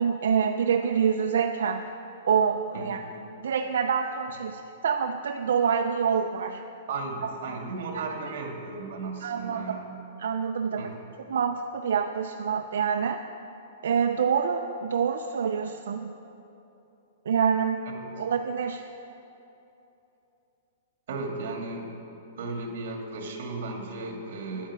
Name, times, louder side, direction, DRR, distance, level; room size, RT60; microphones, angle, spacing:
voice 1, 0.0-1.8 2.2-3.0 3.4-6.6 7.9-8.0 9.2-9.8 10.2-10.9 11.3-13.2 13.8-16.1 17.3-17.8 18.2-18.8, right 7 dB, 80° right, 4 dB, 0.6 m, -26 dB
voice 2, 6.9-10.0 10.8-11.0 21.1-21.9 22.4-24.7, right 3 dB, 55° right, 2 dB, 2.3 m, -35 dB
10.0 x 10.0 x 7.4 m, 2.9 s
hypercardioid pair, 170°, 0 cm